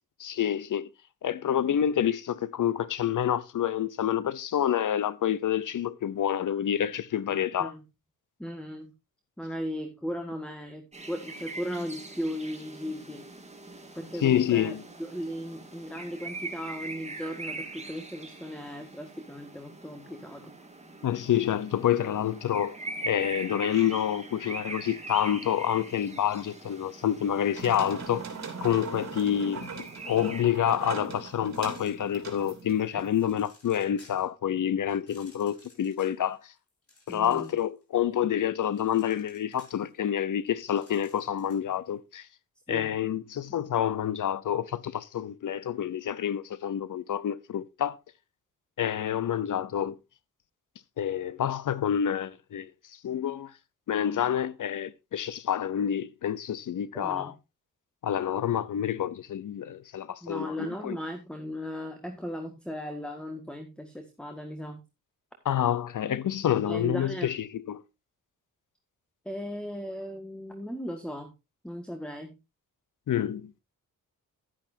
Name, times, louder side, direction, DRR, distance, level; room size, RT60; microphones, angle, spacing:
voice 1, 0.2-0.9 1.2-7.7 14.2-14.8 21.0-22.8 23.0-28.3 28.6-36.5 37.1-42.3 42.7-48.0 48.8-50.0 51.0-53.5 53.9-57.3 58.0-61.0 65.4-67.8 73.1-73.6, left 10 dB, 60° left, 0.8 m, -28 dB
voice 2, 8.4-8.9 9.4-13.2 13.9-14.7 15.0-20.5 32.9-33.1 37.1-37.5 42.7-42.9 56.9-57.3 60.2-64.8 66.6-67.3 69.3-71.3 71.6-72.4, equal, 5° left, 1.7 m, -37 dB
sound 1, 10.9-30.4, right 3 dB, 20° right, 2.2 m, -42 dB
sound 2, 27.5-33.3, right 5 dB, 50° right, 3.1 m, -40 dB
sound 3, 31.4-32.5 33.0-34.4 34.9-37.8 38.1-41.7, left 2 dB, 45° left, 6.3 m, -58 dB
11.5 x 10.0 x 2.7 m
cardioid pair, 70°, 35 cm